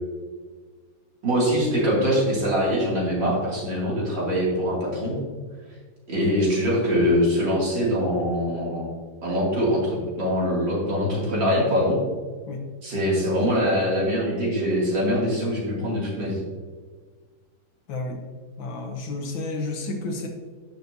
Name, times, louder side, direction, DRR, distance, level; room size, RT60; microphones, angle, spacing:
voice 1, 1.2-5.2 6.1-8.9 9.2-12.0 12.8-16.4, equal, 70° right, -5 dB, 3.4 m, -23 dB
voice 2, 17.9-18.2 18.6-20.3, left 2 dB, 75° left, 2 dB, 2.0 m, -31 dB
13.5 x 6.6 x 2.8 m, 1.5 s
omnidirectional pair, 2.1 m